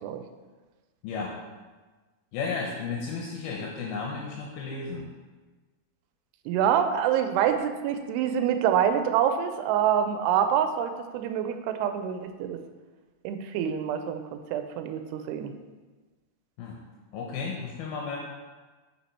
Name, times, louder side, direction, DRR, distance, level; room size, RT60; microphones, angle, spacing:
voice 1, 2.3-5.1 16.6-16.8 17.1-18.2, left 4 dB, 80° left, -1 dB, 2.5 m, -33 dB
voice 2, 6.5-12.6 13.2-15.5, right 9 dB, 85° right, 8 dB, 2.7 m, -26 dB
8.3 x 5.9 x 4.5 m, 1.3 s
omnidirectional pair, 4.7 m